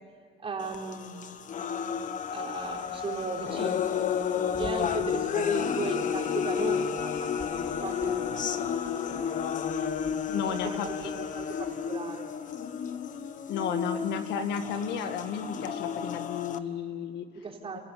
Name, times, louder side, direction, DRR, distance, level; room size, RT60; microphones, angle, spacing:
voice 1, 0.4-1.1 2.3-3.9 4.6-8.7 10.3-12.3 17.3-17.8, right 4 dB, 35° right, 0 dB, 4.0 m, -37 dB
sound 1, 0.6-16.6, left 7 dB, 50° left, 1.3 m, -31 dB
sound 2, 2.6-11.8, left 1 dB, 20° left, 3.0 m, -52 dB
voice 2, 10.3-10.9 13.5-17.3, left 7 dB, 85° left, 7 dB, 2.0 m, -33 dB
29.5 x 15.5 x 8.5 m, 2.3 s
cardioid pair, 110°, 17 cm